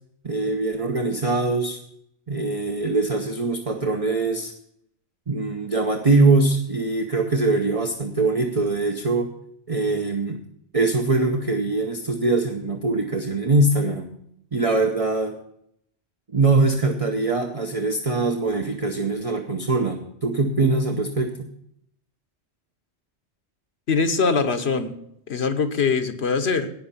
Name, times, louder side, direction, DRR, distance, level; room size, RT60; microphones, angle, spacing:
voice 1, 0.2-1.8 2.3-4.5 5.3-9.3 9.7-10.4 10.7-14.1 14.5-15.3 16.3-21.3, right 3 dB, 35° right, 4 dB, 0.9 m, -22 dB
voice 2, 23.9-25.0 25.3-26.7, left 5 dB, 70° left, 7 dB, 1.3 m, -22 dB
17.0 x 5.8 x 5.6 m, 0.72 s
omnidirectional pair, 1.1 m